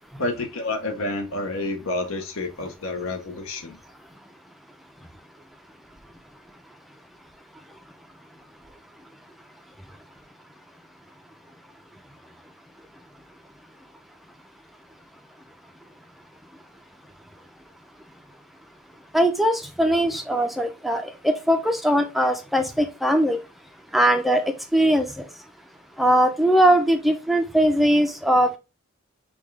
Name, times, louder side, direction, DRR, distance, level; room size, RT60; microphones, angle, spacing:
voice 1, 0.2-3.8, left 2 dB, 75° left, 0.8 m, -29 dB
voice 2, 19.1-23.4 23.9-24.4 24.7-25.2 26.0-28.6, right 1 dB, ahead, 0.3 m, -20 dB
5.2 x 2.3 x 3.2 m
head